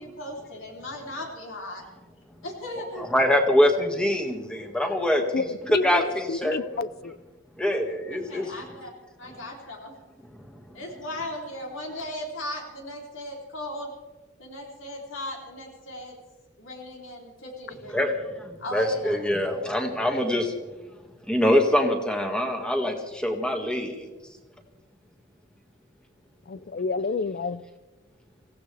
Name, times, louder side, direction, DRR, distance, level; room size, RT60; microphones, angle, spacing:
voice 1, 0.0-1.8 2.4-3.1 8.1-8.9 9.2-9.9 10.7-13.9 14.4-16.2 16.6-17.9 18.6-19.2, left 1 dB, 75° left, -1 dB, 3.4 m, -37 dB
voice 2, 3.0-6.8 7.6-8.5 17.9-20.5 21.3-23.9, left 1 dB, 5° left, 2 dB, 1.9 m, -24 dB
voice 3, 5.3-6.0 6.3-6.9 26.5-27.6, left 4 dB, 50° left, 17 dB, 0.5 m, -29 dB
25.0 x 16.5 x 3.4 m, 1.2 s
head